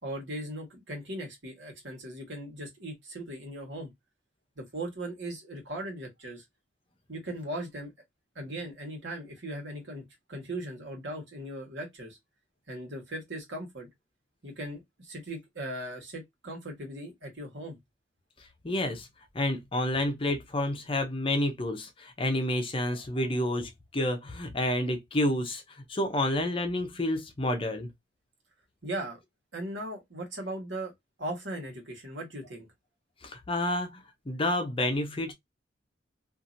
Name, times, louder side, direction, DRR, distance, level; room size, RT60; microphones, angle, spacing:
voice 1, 0.0-3.9 4.6-6.4 7.1-7.9 8.3-10.0 10.3-12.2 12.7-13.9 14.4-17.8 28.8-29.2 29.5-30.9 31.2-32.7, right 1 dB, 70° right, 1.4 m, -38 dB
voice 2, 18.6-19.1 19.3-25.6 25.9-27.9 33.2-35.3, left 1 dB, 30° left, 0.6 m, -29 dB
2.8 x 2.6 x 2.5 m
head